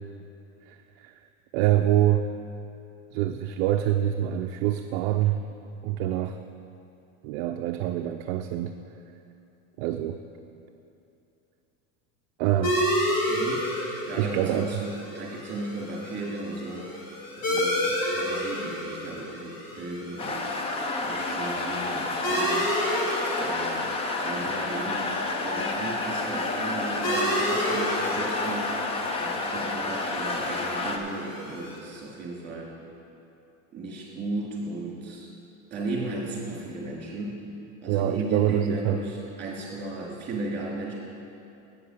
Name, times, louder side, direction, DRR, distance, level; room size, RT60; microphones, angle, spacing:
voice 1, 0.7-1.2 1.5-2.2 3.1-5.4 5.8-6.4 7.2-8.8 9.8-10.2 12.4-12.8 14.2-14.7 37.9-39.0, right 12 dB, 60° right, 6 dB, 0.5 m, -25 dB
sound 1, 12.6-31.8, equal, 55° left, 2.5 m, -31 dB
voice 2, 13.3-13.7 14.0-20.5 21.0-22.8 23.4-28.7 29.2-32.7 33.7-35.3 35.7-37.4 37.8-40.9, right 2 dB, 25° right, -3 dB, 2.7 m, -35 dB
sound 2, 20.2-31.0, left 2 dB, 15° left, 0.4 m, -30 dB
8.5 x 7.8 x 6.6 m, 2.8 s
supercardioid pair, 150°, 39 cm